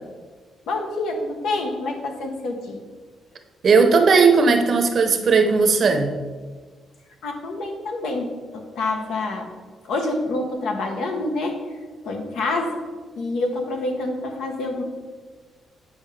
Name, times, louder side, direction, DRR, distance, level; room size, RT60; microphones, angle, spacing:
voice 1, 0.7-2.8 7.2-8.3 8.5-9.5 9.8-11.6 12.0-12.8 13.2-14.8, left 2 dB, 80° left, 3 dB, 1.1 m, -27 dB
voice 2, 3.6-6.2, right 4 dB, 50° right, 6 dB, 0.7 m, -17 dB
9.1 x 5.3 x 3.3 m, 1.5 s
cardioid pair, 120°, 0 cm